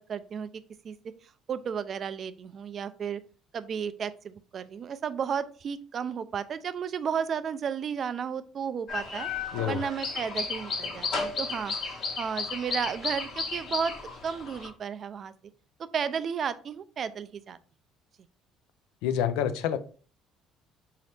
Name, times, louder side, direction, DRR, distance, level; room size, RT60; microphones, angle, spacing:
voice 1, 0.1-0.5 0.8-1.0 1.5-3.2 3.5-9.3 9.7-13.9 14.2-15.3 15.9-17.6, right 7 dB, 50° right, 0.3 m, -33 dB
sound 1, 8.9-14.7, left 4 dB, 60° left, 1.2 m, -34 dB
voice 2, 9.5-9.8 19.0-19.8, left 9 dB, 85° left, 0.3 m, -27 dB
4.0 x 2.8 x 3.3 m
supercardioid pair, 85°, 0 cm